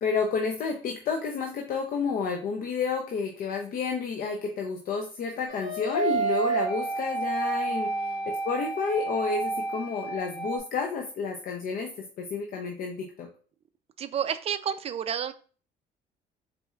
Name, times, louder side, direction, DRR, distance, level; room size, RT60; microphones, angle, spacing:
voice 1, 0.0-8.1 8.4-13.3, left 5 dB, 55° left, 3 dB, 0.6 m, -30 dB
sound 1, 5.5-10.6, right 3 dB, 75° left, 2.0 m, -30 dB
voice 2, 7.7-8.3 14.0-15.3, right 8 dB, 35° right, 12 dB, 0.4 m, -31 dB
4.2 x 4.1 x 2.3 m, 0.41 s
cardioid pair, 110°, 17 cm